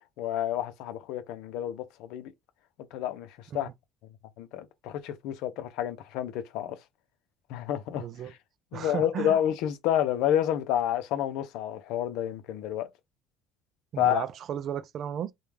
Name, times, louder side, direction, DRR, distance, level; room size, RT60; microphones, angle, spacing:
voice 1, 0.2-2.3 2.9-3.3 3.5-3.7 4.4-6.8 7.5-8.0 8.7-12.9 14.0-14.2, left 11 dB, 75° left, 0.5 m, -29 dB
voice 2, 7.9-8.3 8.7-9.4 13.9-15.3, right 9 dB, 50° right, 0.4 m, -34 dB
2.3 x 2.1 x 3.2 m
cardioid pair, 110°, 0 cm